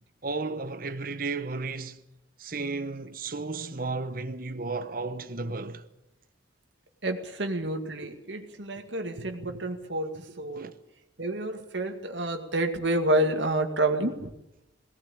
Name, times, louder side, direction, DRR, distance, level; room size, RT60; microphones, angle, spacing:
voice 1, 0.2-2.0 2.4-5.9 10.5-10.7, right 3 dB, 50° right, 1.0 m, -33 dB
voice 2, 7.0-10.7 11.2-14.3, right 1 dB, 75° right, 2.1 m, -29 dB
18.0 x 17.5 x 8.8 m
head